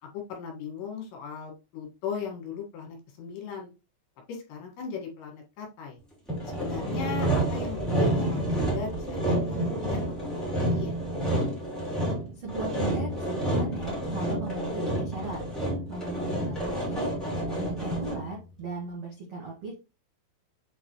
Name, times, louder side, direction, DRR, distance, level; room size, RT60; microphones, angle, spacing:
voice 1, 0.0-3.7 4.3-6.0 6.6-11.0, left 6 dB, 65° left, 0 dB, 3.7 m, -38 dB
Sawing, 6.3-18.3, right 1 dB, ahead, 1.6 m, -29 dB
voice 2, 12.3-15.4 15.9-17.1 17.5-19.8, right 2 dB, 80° right, -3 dB, 1.4 m, -37 dB
8.2 x 4.0 x 3.0 m, 0.29 s
omnidirectional pair, 5.8 m